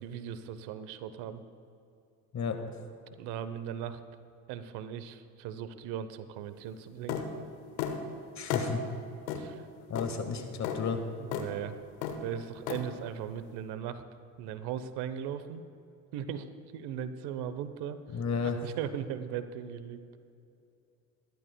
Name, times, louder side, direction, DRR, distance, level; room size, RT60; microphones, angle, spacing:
voice 1, 0.0-1.4 3.2-4.0 4.5-7.2 9.3-9.6 11.2-11.8 12.2-14.0 14.4-15.6 16.1-18.0 18.6-20.0, right 9 dB, 65° right, 12 dB, 0.9 m, -38 dB
sound 1, 7.1-7.3 7.8-8.0 8.5-8.7 9.3-9.4 10.0-10.1 10.6-10.8 11.3-11.5 12.0-12.2 12.7-12.8, left 9 dB, 80° left, 1.2 m, -32 dB
voice 2, 8.3-8.8 9.9-11.0 18.1-18.7, left 5 dB, 40° left, 6 dB, 1.6 m, -32 dB
22.5 x 11.5 x 2.2 m, 2.6 s
hypercardioid pair, 70°, 42 cm